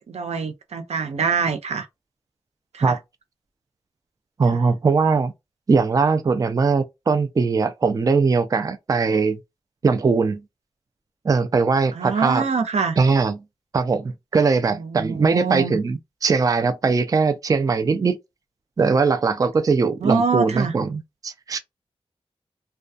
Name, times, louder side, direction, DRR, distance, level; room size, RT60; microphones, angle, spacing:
voice 1, 0.0-1.9 2.7-3.0 11.9-13.0 14.7-15.8 20.0-20.7, right 5 dB, 90° right, 0.5 m, -24 dB
voice 2, 4.4-5.3 5.7-9.4 9.8-10.4 11.2-12.4 13.0-13.4 13.7-18.2 18.8-21.6, right 4 dB, 35° right, 0.3 m, -20 dB
2.3 x 2.2 x 2.5 m
wide cardioid pair, 95°, 11 cm